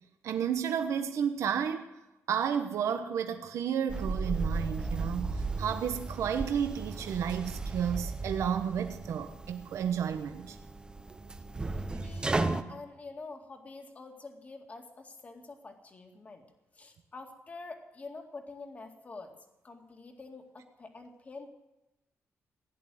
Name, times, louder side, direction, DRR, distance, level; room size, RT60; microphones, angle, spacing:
voice 1, 0.2-1.9 2.3-10.6, right 8 dB, 80° right, 7 dB, 1.1 m, -32 dB
sound 1, 3.9-12.6, right 3 dB, 15° right, 0.8 m, -35 dB
voice 2, 12.0-16.4 16.7-19.4 19.6-21.5, left 3 dB, 30° left, 4 dB, 2.1 m, -46 dB
16.5 x 11.0 x 7.7 m, 0.99 s
wide cardioid pair, 145°, 5 cm